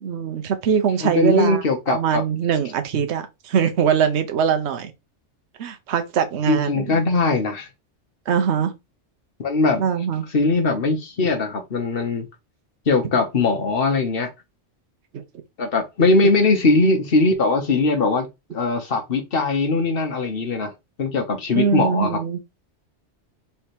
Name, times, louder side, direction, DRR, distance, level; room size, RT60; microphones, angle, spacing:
voice 1, 0.0-1.6 1.9-4.9 5.6-7.0 8.3-8.7 9.8-10.3 15.1-15.2 21.5-22.4, right 7 dB, 70° right, 1.0 m, -22 dB
voice 2, 1.0-2.2 6.5-7.7 9.4-9.8 10.3-12.2 12.9-14.3 15.6-20.7 21.0-22.2, left 3 dB, 55° left, 1.2 m, -20 dB
3.5 x 3.3 x 4.3 m
omnidirectional pair, 1.2 m